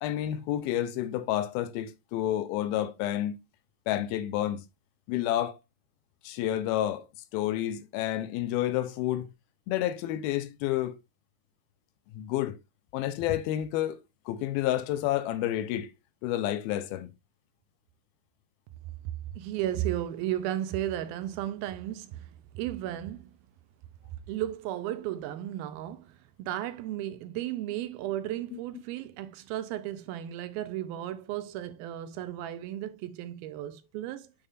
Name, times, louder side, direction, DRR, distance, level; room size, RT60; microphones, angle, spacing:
voice 1, 0.0-3.4 3.9-4.6 5.1-5.5 6.2-7.1 7.3-9.3 9.7-11.0 12.1-12.6 12.9-14.0 14.3-15.9 16.2-17.1, left 13 dB, 85° left, 2.5 m, -29 dB
voice 2, 19.3-23.4 24.3-34.3, right 12 dB, 80° right, 2.4 m, -34 dB
7.1 x 6.7 x 2.5 m
omnidirectional pair, 4.4 m